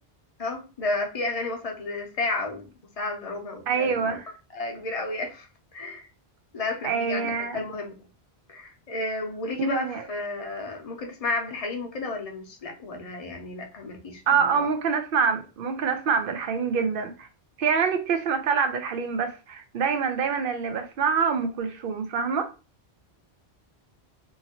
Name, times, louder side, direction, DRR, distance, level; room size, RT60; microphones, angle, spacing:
voice 1, 0.4-4.2 4.5-6.1 6.5-7.9 8.5-14.7, left 2 dB, 40° left, 0.6 m, -32 dB
voice 2, 3.7-4.3 6.8-7.6 9.6-10.1 14.3-17.3 17.6-22.5, right 6 dB, 65° right, 0.7 m, -26 dB
2.8 x 2.6 x 2.8 m
omnidirectional pair, 1.1 m